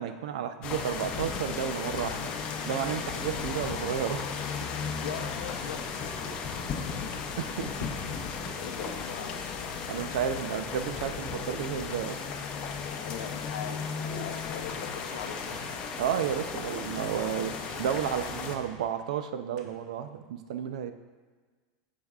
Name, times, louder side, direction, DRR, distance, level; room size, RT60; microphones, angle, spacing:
voice 1, 0.0-2.3 2.7-4.4 7.4-7.7 9.9-12.2 16.0-20.9, right 9 dB, 90° right, 9 dB, 0.6 m, -32 dB
sound 1, 0.6-18.6, left 6 dB, 30° left, 0.6 m, -35 dB
sound 2, 4.4-18.5, right 2 dB, 30° right, 1.9 m, -50 dB
voice 2, 5.0-5.8 8.6-9.7 12.9-15.6, left 8 dB, 90° left, 7 dB, 0.7 m, -41 dB
sound 3, 14.2-16.6 16.9-18.8 19.6-19.7, right 4 dB, 70° right, 1.1 m, -50 dB
13.5 x 5.1 x 2.4 m, 1.4 s
supercardioid pair, 175°, 4 cm